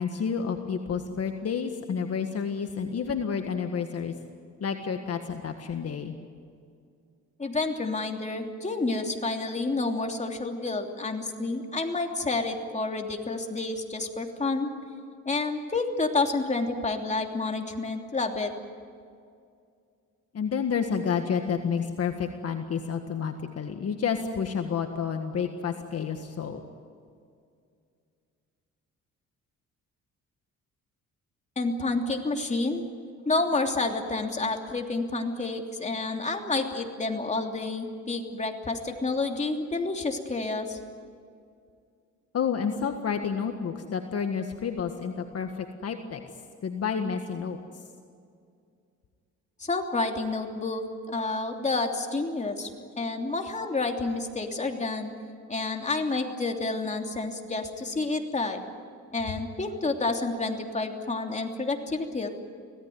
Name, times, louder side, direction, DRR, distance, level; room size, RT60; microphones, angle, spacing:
voice 1, 0.0-4.1 4.6-6.2 20.3-26.6 42.3-46.2 46.6-47.6, left 6 dB, 55° left, 5 dB, 1.7 m, -30 dB
voice 2, 7.4-14.7 15.2-18.5 31.6-32.8 33.2-40.8 49.6-52.7 53.0-55.1 55.5-58.6 59.1-62.3, left 3 dB, 25° left, 3 dB, 3.1 m, -29 dB
25.5 x 17.5 x 9.5 m, 2.3 s
cardioid pair, 90°, 30 cm